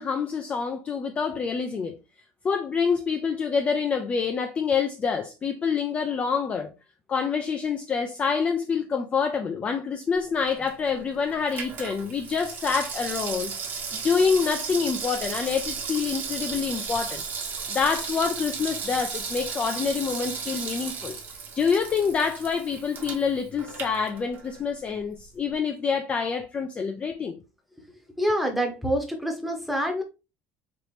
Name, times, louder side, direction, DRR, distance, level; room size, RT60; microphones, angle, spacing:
voice 1, 0.0-2.0 2.4-6.7 7.1-13.5 14.0-17.2 17.7-21.2 21.6-27.4, left 5 dB, 20° left, 0.4 m, -26 dB
Water tap faucet / Sink (filling or washing), 10.3-24.6 24.9-25.0, right 5 dB, 35° right, 0.9 m, -35 dB
voice 2, 28.2-30.0, equal, ahead, 0.9 m, -26 dB
4.2 x 2.8 x 3.1 m
cardioid pair, 155°, 6 cm